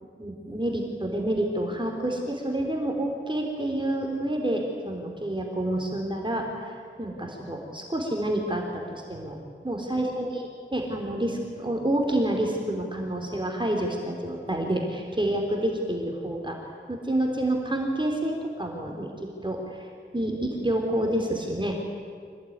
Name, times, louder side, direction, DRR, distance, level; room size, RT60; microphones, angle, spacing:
voice 1, 0.2-6.7 7.0-9.4 9.6-16.6 16.9-19.1 19.4-19.9 20.1-21.7, right 1 dB, 25° right, 0 dB, 3.5 m, -28 dB
25.5 x 18.5 x 9.5 m, 2.1 s
wide cardioid pair, 70°, 19 cm